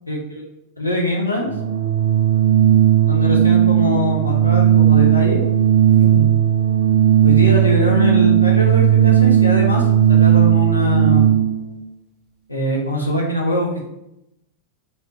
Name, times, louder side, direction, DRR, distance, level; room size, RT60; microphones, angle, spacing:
voice 1, 0.1-0.4 0.8-1.5 3.1-5.4 6.0-6.3 7.2-11.4 12.5-13.8, left 1 dB, 85° left, -2 dB, 0.6 m, -22 dB
Organ, 1.4-11.7, right 10 dB, 35° right, 0.5 m, -15 dB
2.9 x 2.7 x 3.1 m, 0.84 s
figure-of-eight pair, 90°, 0 cm